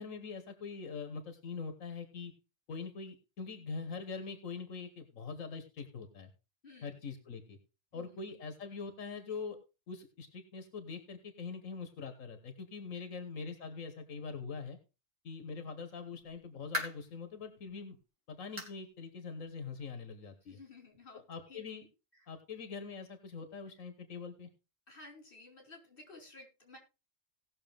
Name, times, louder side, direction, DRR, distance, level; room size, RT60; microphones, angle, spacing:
voice 1, 0.0-2.3 2.7-6.3 6.8-7.6 7.9-9.6 9.9-14.8 15.2-18.0 18.3-20.6 21.3-21.9 22.3-24.5, left 5 dB, 90° left, 8 dB, 1.7 m, -43 dB
voice 2, 7.9-8.2 12.9-13.3 20.4-21.6 22.1-22.3 23.7-23.8 24.9-26.8, left 2 dB, 45° left, 1 dB, 4.3 m, -55 dB
sound 1, 16.3-17.2 17.7-17.8 18.6-18.8 19.2-19.3 19.8-19.9 20.9-21.0, equal, 75° right, 3.1 m, -40 dB
18.0 x 6.7 x 3.5 m, 0.30 s
omnidirectional pair, 1.3 m